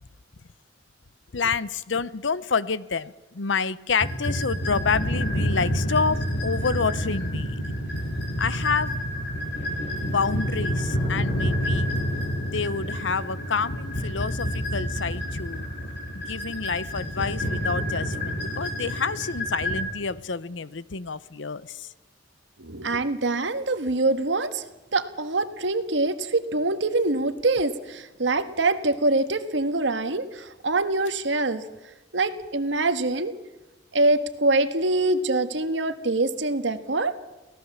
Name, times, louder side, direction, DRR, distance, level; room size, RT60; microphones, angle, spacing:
voice 1, 1.3-7.6 8.4-9.0 10.0-12.0 12.4-15.7 16.1-21.9, left 5 dB, 80° left, 18 dB, 0.8 m, -28 dB
sound 1, 4.0-19.8, equal, 65° left, 5.9 m, -28 dB
voice 2, 22.6-24.6 24.9-31.6 32.1-33.3 33.9-37.1, right 2 dB, 75° right, 10 dB, 1.5 m, -24 dB
24.5 x 17.0 x 7.3 m, 1.0 s
head